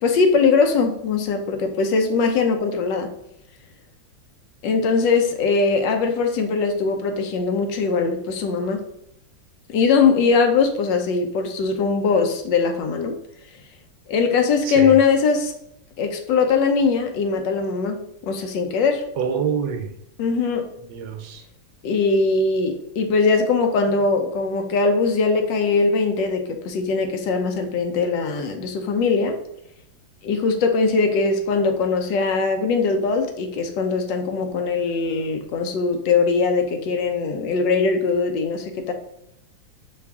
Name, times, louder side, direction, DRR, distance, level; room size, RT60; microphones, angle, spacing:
voice 1, 0.0-3.1 4.6-8.8 9.7-13.1 14.1-15.5 16.0-19.0 20.2-20.7 21.8-29.4 30.2-38.9, left 4 dB, 75° left, 5 dB, 1.3 m, -21 dB
voice 2, 14.6-15.0 19.2-19.9 20.8-21.4, right 7 dB, 75° right, 5 dB, 1.2 m, -26 dB
5.8 x 2.4 x 3.5 m, 0.78 s
omnidirectional pair, 2.1 m